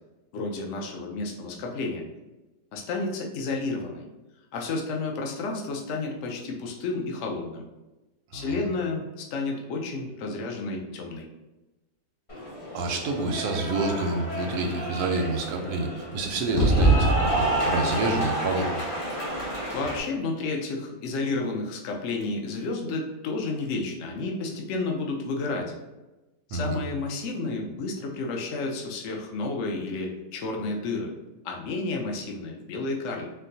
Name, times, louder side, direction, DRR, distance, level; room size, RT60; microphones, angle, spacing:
voice 1, 0.3-2.0 2.7-4.1 4.5-7.6 8.3-11.3 19.7-25.7 26.5-31.1 31.4-33.3, left 3 dB, 65° left, 0 dB, 0.8 m, -31 dB
Cheering / Applause, 12.3-20.0, right 1 dB, 35° left, 0.5 m, -27 dB
voice 2, 12.7-18.7 26.5-26.8, right 2 dB, 90° right, 3 dB, 1.1 m, -28 dB
4.3 x 2.0 x 2.6 m, 1.1 s
omnidirectional pair, 1.6 m